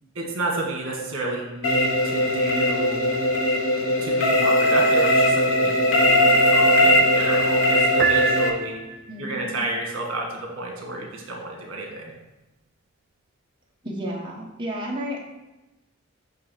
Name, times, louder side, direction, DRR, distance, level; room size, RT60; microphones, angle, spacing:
voice 1, 0.1-3.2 3.8-8.8 9.2-12.1, right 2 dB, 65° right, -1 dB, 1.9 m, -31 dB
sound 1, 1.6-8.5, left 1 dB, 70° left, 1.0 m, -19 dB
Piano, 8.0-9.2, right 6 dB, 45° right, 0.3 m, -25 dB
voice 2, 9.1-9.5 13.8-15.2, equal, 20° right, -2 dB, 1.3 m, -32 dB
9.1 x 3.1 x 6.5 m, 1.0 s
head